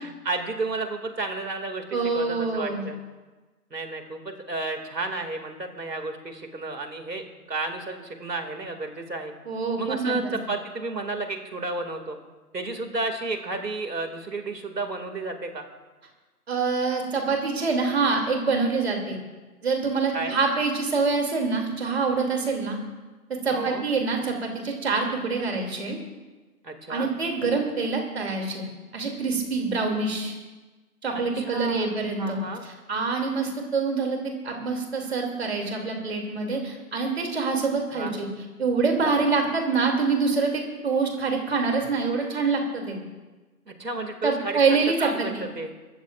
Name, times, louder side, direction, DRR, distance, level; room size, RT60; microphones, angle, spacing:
voice 1, 0.0-3.0 3.7-9.3 9.8-12.2 12.5-15.7 20.1-20.4 23.5-23.8 26.6-27.1 31.3-32.6 37.9-38.1 43.7-45.7, right 3 dB, 80° right, 6 dB, 2.5 m, -32 dB
voice 2, 1.9-2.8 9.4-10.3 16.5-19.2 19.6-22.8 23.4-26.0 26.9-28.6 28.9-30.3 31.0-32.4 32.9-34.2 34.4-38.3 38.6-43.0 44.2-45.4, right 4 dB, 40° right, 2 dB, 2.9 m, -25 dB
23.0 x 13.5 x 2.5 m, 1.2 s
figure-of-eight pair, 160°, 48 cm